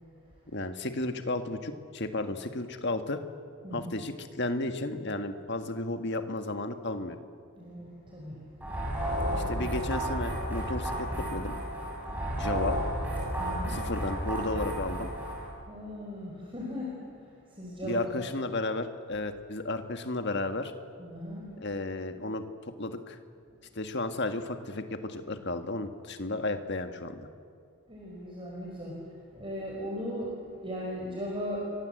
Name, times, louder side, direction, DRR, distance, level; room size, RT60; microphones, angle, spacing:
voice 1, 0.5-3.2 3.7-7.2 9.3-11.6 12.4-12.8 13.7-15.1 17.8-20.7 21.6-22.5 22.8-23.2 23.7-27.3, left 2 dB, 50° left, 7 dB, 1.6 m, -33 dB
voice 2, 7.5-8.5 9.0-9.7 13.3-13.8 15.7-18.0 21.0-21.5 23.5-23.6 27.9-31.7, equal, 25° right, -3 dB, 5.0 m, -38 dB
sound 1, 8.6-15.5, equal, 10° right, 7.9 m, -32 dB
29.5 x 24.0 x 7.9 m, 2.3 s
head